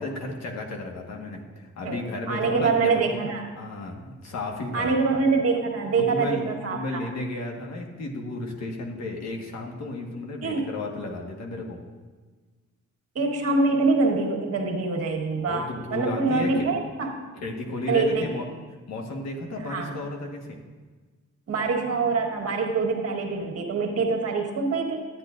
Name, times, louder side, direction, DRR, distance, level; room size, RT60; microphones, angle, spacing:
voice 1, 0.0-3.0 3.5-4.9 5.9-6.4 6.7-11.8 15.4-16.7 17.4-18.4 18.9-20.6, left 2 dB, 60° left, 1 dB, 1.5 m, -33 dB
voice 2, 2.3-3.5 4.7-7.0 10.4-10.7 13.1-17.2 17.9-18.2 19.6-19.9 21.5-25.1, right 4 dB, 50° right, 2 dB, 1.5 m, -25 dB
12.0 x 9.4 x 2.5 m, 1.4 s
cardioid pair, 90°, 30 cm